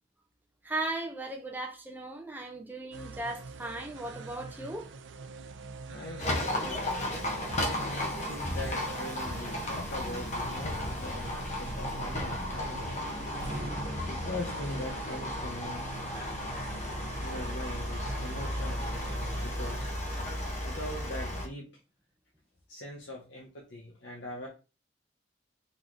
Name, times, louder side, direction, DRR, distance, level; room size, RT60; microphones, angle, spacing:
voice 1, 0.6-4.9 8.4-8.6 9.3-9.4, right 2 dB, 10° right, 0.6 m, -37 dB
sound 1, 2.9-19.9, right 4 dB, 75° right, 0.5 m, -45 dB
voice 2, 5.9-12.9 14.1-15.9 17.2-19.9 20.6-21.7 22.7-24.5, left 1 dB, 65° left, 0.9 m, -42 dB
Livestock farm animals working animals, 6.2-21.5, left 1 dB, 40° left, 1.0 m, -34 dB
sound 2, 13.3-17.1, right 1 dB, 40° right, 1.4 m, -43 dB
4.0 x 3.1 x 3.8 m
head